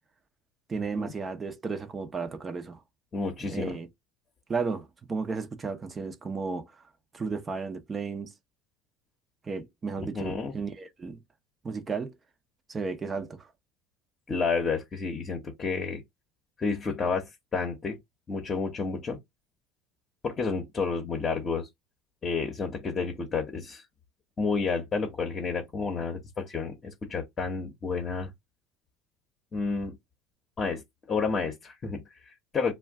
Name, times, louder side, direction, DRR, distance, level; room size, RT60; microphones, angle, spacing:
voice 1, 0.7-2.8 3.5-3.9 4.5-6.7 7.1-8.3 9.5-11.2 11.6-12.1 12.7-13.5, right 4 dB, 25° right, 0.7 m, -33 dB
voice 2, 3.1-3.8 10.0-10.5 14.3-16.0 16.6-18.0 18.3-19.2 20.2-21.7 22.2-23.8 24.4-28.3 29.5-29.9 30.6-30.8 31.1-32.7, left 4 dB, 30° left, 0.9 m, -30 dB
2.5 x 2.2 x 3.5 m
supercardioid pair, 100°, 0 cm